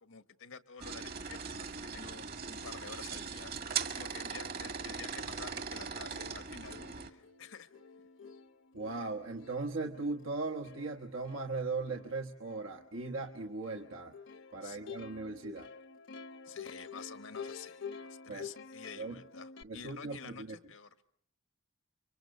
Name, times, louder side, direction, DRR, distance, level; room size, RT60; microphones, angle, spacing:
voice 1, 0.0-7.7 14.6-14.9 16.4-20.9, left 5 dB, 85° left, 10 dB, 1.5 m, -50 dB
sound 1, 0.8-7.1, right 6 dB, 50° right, 1.7 m, -40 dB
Plucked string instrument, 5.8-5.9 6.1-19.6, left 5 dB, 65° left, 1.0 m, -49 dB
voice 2, 8.7-14.1 14.5-15.7 18.3-18.5 19.0-19.2 19.6-20.6, right 3 dB, 75° right, 2 dB, 1.3 m, -38 dB
29.5 x 24.5 x 6.6 m, 0.63 s
head